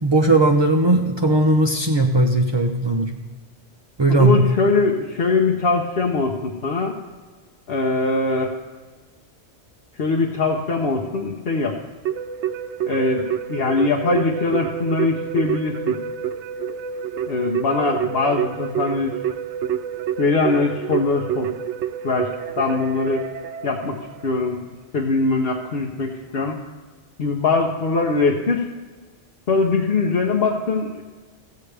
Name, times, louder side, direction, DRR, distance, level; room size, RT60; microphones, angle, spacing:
voice 1, 0.0-3.2 4.0-4.4, right 2 dB, 35° right, 3 dB, 0.4 m, -18 dB
voice 2, 4.1-7.0 7.7-8.5 10.0-11.7 12.9-15.9 17.3-19.1 20.2-21.5 22.0-22.3 22.6-23.3 23.6-24.0 24.2-24.6 24.9-26.6 27.2-28.6 29.5-31.0, left 3 dB, 60° left, 0 dB, 1.0 m, -21 dB
Keyboard (musical), 12.1-24.5, right 9 dB, 80° right, 0.9 m, -28 dB
14.5 x 8.5 x 3.4 m, 1.4 s
omnidirectional pair, 1.2 m